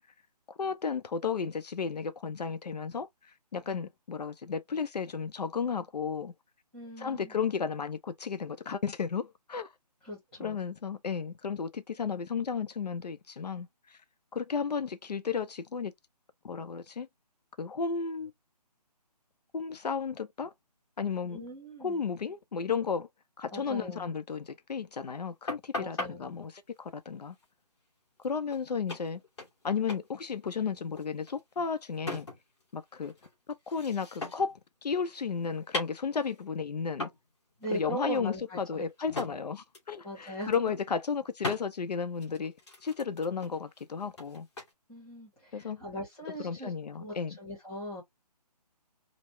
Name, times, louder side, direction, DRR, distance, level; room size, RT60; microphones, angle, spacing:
voice 1, 0.6-3.1 3.5-6.3 7.0-9.7 10.4-14.0 14.3-15.9 16.4-17.1 17.6-18.3 19.5-20.5 21.0-21.4 21.8-23.1 23.4-26.5 26.8-27.4 28.2-29.2 29.6-32.3 32.7-33.1 33.7-37.1 37.7-42.6 42.8-44.5 45.5-45.8 46.4-47.4, left 6 dB, 70° left, 0.6 m, -33 dB
voice 2, 6.7-7.3 10.0-10.6 21.3-22.0 23.5-24.1 25.8-26.4 37.6-39.3 40.0-40.7 44.9-48.0, right 1 dB, 5° left, 1.0 m, -40 dB
sound 1, 25.5-26.1 28.2-28.3 28.5-28.6 28.9-29.6 29.9-30.1 30.4-32.6 32.9-34.6 34.9-36.4 37.0-37.3 37.6-37.8 38.1-39.4 39.7-40.0 40.3-40.8 41.4-41.6 42.2-44.7, left 2 dB, 40° left, 2.5 m, -39 dB
5.1 x 2.1 x 3.1 m
hypercardioid pair, 175°, 21 cm